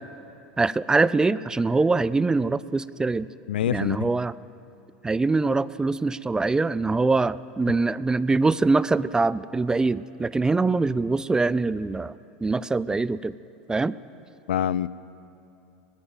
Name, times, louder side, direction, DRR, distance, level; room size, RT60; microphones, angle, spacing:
voice 1, 0.6-3.3 3.7-4.3 5.0-12.1 12.4-13.3 13.7-13.9, right 3 dB, 15° right, 19 dB, 0.5 m, -23 dB
voice 2, 3.5-4.1 14.5-14.9, left 11 dB, 85° left, 19 dB, 0.5 m, -25 dB
19.5 x 16.5 x 9.2 m, 2.8 s
hypercardioid pair, 90°, 5 cm